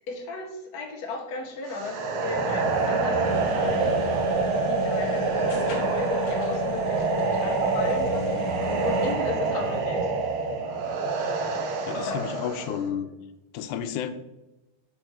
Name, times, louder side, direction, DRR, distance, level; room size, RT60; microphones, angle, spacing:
voice 1, 0.1-3.9 4.5-8.4 8.8-10.1 11.9-12.7, left 4 dB, 45° left, 0 dB, 1.3 m, -35 dB
sound 1, 1.7-12.8, right 4 dB, 75° right, 1.2 m, -26 dB
Breathing, 2.3-6.0 7.8-10.9, right 1 dB, 40° right, 2.2 m, -39 dB
sound 2, 3.2-9.1, left 6 dB, 60° left, 1.4 m, -36 dB
voice 2, 11.8-13.1 13.5-14.1, left 8 dB, 85° left, 9 dB, 2.1 m, -31 dB
6.2 x 4.6 x 6.3 m, 0.96 s
omnidirectional pair, 3.5 m